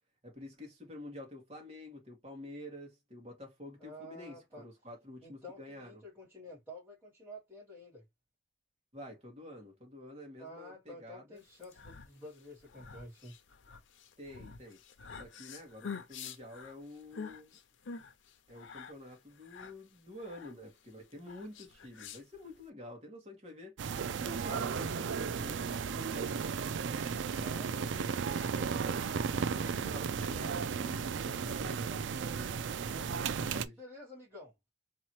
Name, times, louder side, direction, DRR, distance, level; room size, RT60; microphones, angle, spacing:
voice 1, 0.2-6.0 8.9-11.4 14.2-14.8 15.1-17.6 18.5-23.8 24.2-26.4 27.0-27.2 27.7-28.3 28.6-31.6 33.6-33.7, left 1 dB, 35° right, 1.8 m, -49 dB
voice 2, 3.8-4.7 5.2-8.0 10.4-13.3 27.3-28.0 31.5-32.3 32.9-34.7, left 1 dB, 10° right, 2.5 m, -50 dB
sound 1, 11.5-22.7, left 5 dB, 90° left, 0.6 m, -48 dB
sound 2, 23.8-33.7, right 6 dB, 80° right, 0.4 m, -34 dB
3.9 x 3.0 x 2.9 m
head